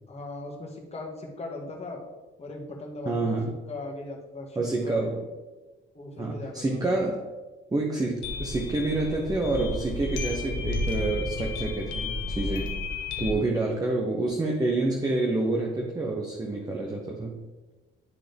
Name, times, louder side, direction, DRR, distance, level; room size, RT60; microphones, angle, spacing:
voice 1, 0.1-2.0 2.4-3.4 3.7-5.1 5.9-7.0, left 2 dB, 30° left, 0 dB, 1.7 m, -39 dB
voice 2, 3.0-3.5 4.6-5.2 6.2-7.2 7.7-12.7 13.2-17.3, right 2 dB, 20° right, 0 dB, 0.9 m, -28 dB
sound 1, 8.2-13.4, left 2 dB, 75° left, 0.9 m, -32 dB
11.0 x 3.7 x 3.4 m, 1.2 s
cardioid pair, 90°, 20 cm